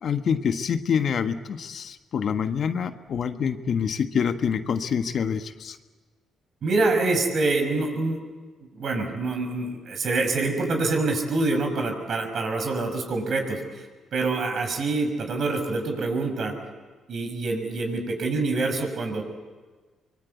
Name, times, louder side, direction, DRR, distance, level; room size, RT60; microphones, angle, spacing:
voice 1, 0.0-5.8, left 7 dB, 60° left, 9 dB, 1.3 m, -26 dB
voice 2, 6.6-8.2 8.7-16.5 17.1-19.2, right 3 dB, 60° right, 4 dB, 6.0 m, -26 dB
24.5 x 21.5 x 8.3 m, 1.4 s
supercardioid pair, 65°, 0 cm